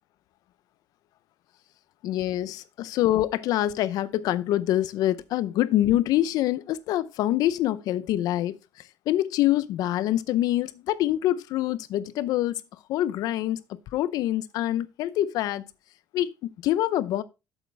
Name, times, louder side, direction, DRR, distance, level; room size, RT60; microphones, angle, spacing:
voice 1, 2.0-8.6 9.1-12.6 12.9-13.6 13.9-15.6 16.1-17.2, left 13 dB, 65° left, 0.6 m, -25 dB
8.3 x 7.0 x 3.3 m
cardioid pair, 165°, 7 cm